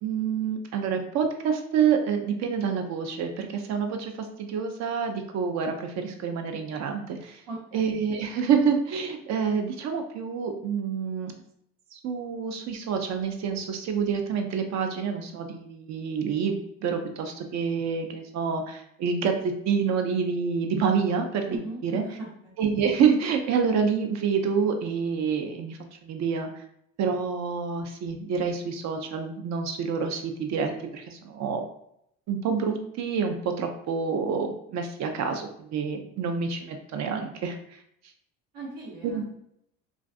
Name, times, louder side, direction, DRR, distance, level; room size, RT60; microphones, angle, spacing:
voice 1, 0.0-7.4 7.7-11.3 11.9-22.0 22.6-26.6 27.0-31.6 32.3-37.8 39.0-39.2, right 6 dB, 50° right, 5 dB, 0.4 m, -27 dB
voice 2, 7.5-8.0 21.5-22.5 38.5-39.3, right 2 dB, 80° right, -7 dB, 1.0 m, -39 dB
2.4 x 2.3 x 2.4 m, 0.73 s
supercardioid pair, 95°, 35 cm